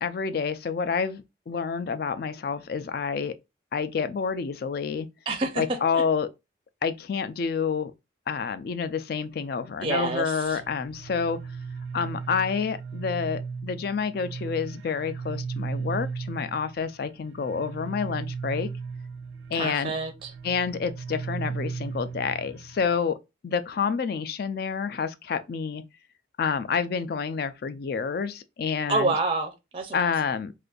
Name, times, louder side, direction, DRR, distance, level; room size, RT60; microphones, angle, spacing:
voice 1, 0.0-3.3 3.7-5.1 5.6-6.3 6.8-7.9 8.3-11.4 11.9-18.7 19.5-19.9 20.4-23.2 23.4-25.8 26.4-29.1 29.9-30.5, left 6 dB, 50° left, 0.3 m, -28 dB
voice 2, 5.3-5.6 5.9-6.0 9.8-10.6 19.5-20.3 28.9-30.1, right 3 dB, 30° right, 0.5 m, -28 dB
sound 1, 10.5-23.0, right 5 dB, 90° right, 0.4 m, -36 dB
2.5 x 2.5 x 3.7 m
head